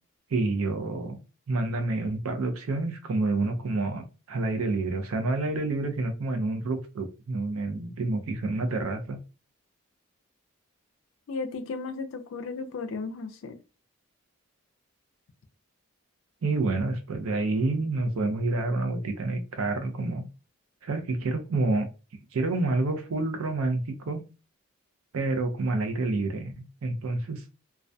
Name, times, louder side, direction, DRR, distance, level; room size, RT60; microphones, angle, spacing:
voice 1, 0.3-1.2 1.5-9.2 16.4-20.3 20.8-21.9 22.3-24.2 25.1-27.4, right 2 dB, 80° right, 0.5 m, -28 dB
voice 2, 11.3-13.6, left 4 dB, 65° left, 0.3 m, -35 dB
2.3 x 2.1 x 2.5 m
head